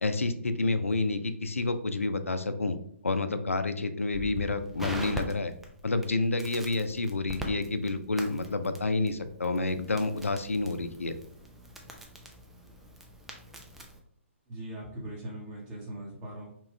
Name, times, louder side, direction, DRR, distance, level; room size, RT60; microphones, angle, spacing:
voice 1, 0.0-2.8 3.0-5.5 5.8-11.1, left 3 dB, 85° left, 9 dB, 0.4 m, -29 dB
Crackle, 4.1-14.0, equal, 5° right, 0.3 m, -42 dB
voice 2, 14.5-16.5, right 1 dB, 20° right, -6 dB, 1.0 m, -40 dB
2.9 x 2.3 x 3.1 m, 0.65 s
figure-of-eight pair, 125°, 7 cm